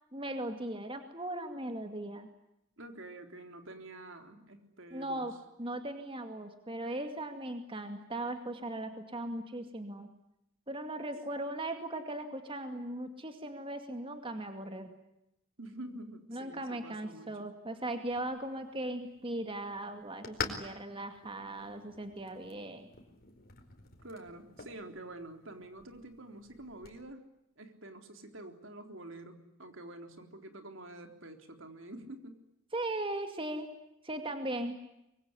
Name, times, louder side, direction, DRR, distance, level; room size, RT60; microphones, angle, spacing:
voice 1, 0.1-2.3 4.9-5.3 5.6-10.1 10.7-14.9 16.3-22.9 32.7-33.7 34.0-34.8, right 1 dB, 25° right, 6 dB, 2.3 m, -38 dB
voice 2, 2.8-5.2 15.6-17.5 24.0-27.3 27.6-32.4, right 1 dB, 65° right, 6 dB, 3.8 m, -47 dB
sound 1, 18.0-27.0, left 5 dB, 45° left, 4.6 m, -47 dB
25.0 x 23.5 x 9.8 m, 0.85 s
head